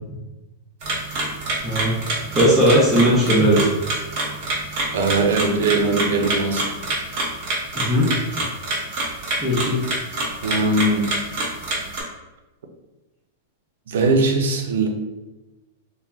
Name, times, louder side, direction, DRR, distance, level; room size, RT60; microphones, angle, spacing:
sound 1, 0.8-12.0, right 2 dB, 40° right, 0.8 m, -27 dB
voice 1, 1.6-3.7 7.7-8.1 9.4-9.8, equal, ahead, -8 dB, 0.5 m, -18 dB
voice 2, 4.9-6.8 10.4-11.2 13.9-14.9, right 3 dB, 80° right, 4 dB, 0.5 m, -20 dB
3.2 x 2.1 x 2.4 m, 1.0 s
supercardioid pair, 170°, 0 cm